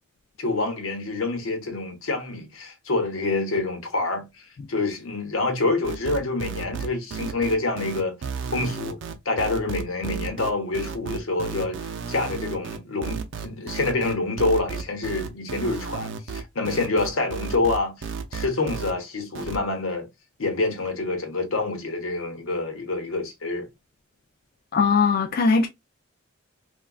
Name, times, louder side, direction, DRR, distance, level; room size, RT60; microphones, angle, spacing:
voice 1, 0.4-8.2 8.5-9.0 9.2-20.1 20.4-23.7, left 3 dB, 85° left, 1.0 m, -27 dB
sound 1, 5.8-18.9 19.4-19.6, right 5 dB, 65° right, 0.5 m, -33 dB
voice 2, 24.7-25.7, left 5 dB, 45° left, 0.3 m, -20 dB
3.5 x 2.3 x 2.3 m
head